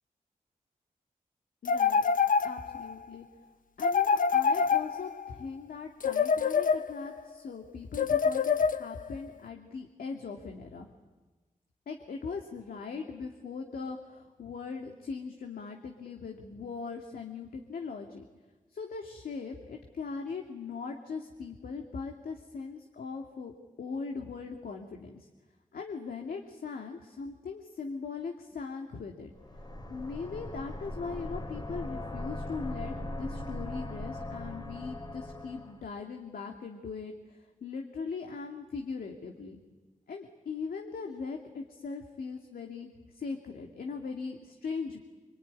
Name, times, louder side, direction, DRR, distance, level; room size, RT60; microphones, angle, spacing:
voice 1, 1.6-2.0 2.4-3.3 3.8-10.9 11.9-18.2 18.7-23.5 23.8-25.3 25.7-29.3 29.9-39.6 40.1-45.0, left 5 dB, 85° left, 3 dB, 2.4 m, -40 dB
sound 1, 1.7-2.9 3.8-5.3 6.0-7.2 7.9-9.1, left 6 dB, 65° left, 1.0 m, -26 dB
sound 2, 29.3-35.8, left 1 dB, 30° left, 3.7 m, -39 dB
26.0 x 23.5 x 9.7 m, 1.2 s
cardioid pair, 55°, 15 cm